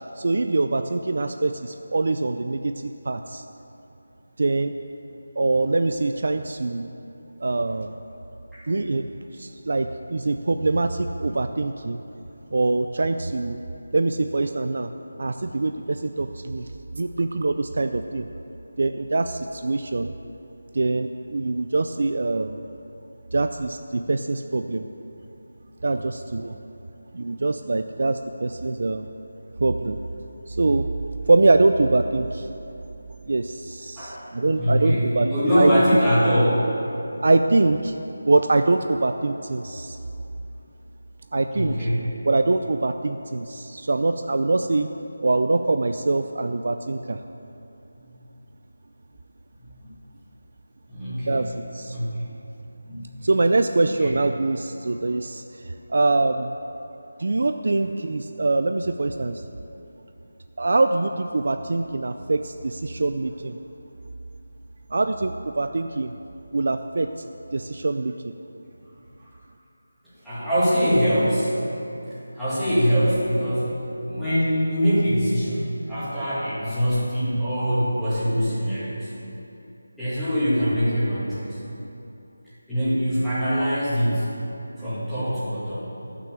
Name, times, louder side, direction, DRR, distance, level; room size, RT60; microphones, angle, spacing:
voice 1, 0.2-3.4 4.4-4.7 5.4-6.9 7.4-7.9 8.7-9.0 9.3-12.0 12.5-13.6 13.9-14.9 15.2-16.7 16.9-18.3 18.8-20.1 20.7-22.6 23.3-24.8 25.8-26.6 27.1-29.1 29.6-30.0 30.5-30.8 31.3-32.5 33.3-35.3 35.6-35.7 37.2-37.9 38.3-40.0 41.3-41.9 42.2-44.9 45.2-47.2 51.3-52.0 53.2-56.5 57.2-59.4 60.6-63.6 64.9-66.1 66.5-67.1 67.5-68.3, right 2 dB, 50° right, 7 dB, 0.4 m, -23 dB
voice 2, 34.0-36.7 41.5-42.1 50.9-51.5 51.9-52.3 52.8-53.1 53.8-54.1 70.2-71.6 72.3-79.1 80.0-81.6 82.7-84.3 84.8-85.9, equal, ahead, -18 dB, 2.1 m, -23 dB
10.5 x 6.1 x 7.0 m, 2.8 s
figure-of-eight pair, 175°, 0 cm